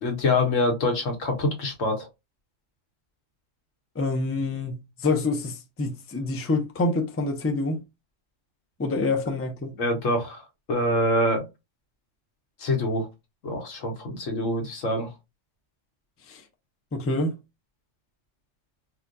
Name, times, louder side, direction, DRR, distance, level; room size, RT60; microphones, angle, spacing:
voice 1, 0.0-2.1 9.8-11.4 12.6-13.1 13.4-15.1, left 1 dB, 90° left, 1.4 m, -25 dB
voice 2, 4.0-7.8 8.8-9.8 16.3-16.4 16.9-17.3, left 3 dB, 20° left, 0.4 m, -27 dB
4.3 x 2.2 x 2.5 m
omnidirectional pair, 1.3 m